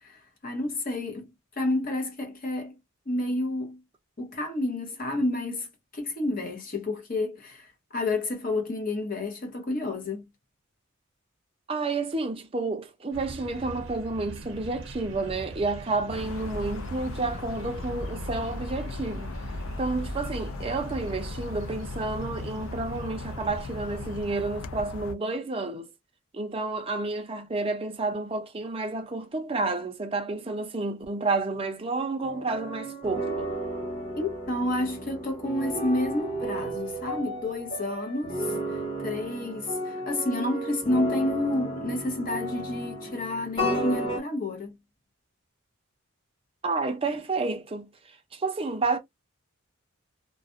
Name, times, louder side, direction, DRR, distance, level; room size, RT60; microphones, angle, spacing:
voice 1, 0.0-1.3 1.6-2.7 3.1-3.8 4.2-10.2 34.2-44.8, left 2 dB, 40° left, 0.8 m, -30 dB
voice 2, 11.7-19.4 19.8-25.9 26.3-33.5 46.6-49.0, right 3 dB, 25° right, 0.5 m, -30 dB
sound 1, 13.1-24.3, right 2 dB, 65° right, 0.7 m, -41 dB
sound 2, 16.1-25.1, left 2 dB, 70° left, 0.4 m, -37 dB
sound 3, 32.2-44.2, right 1 dB, 20° left, 1.1 m, -33 dB
2.4 x 2.1 x 2.5 m
head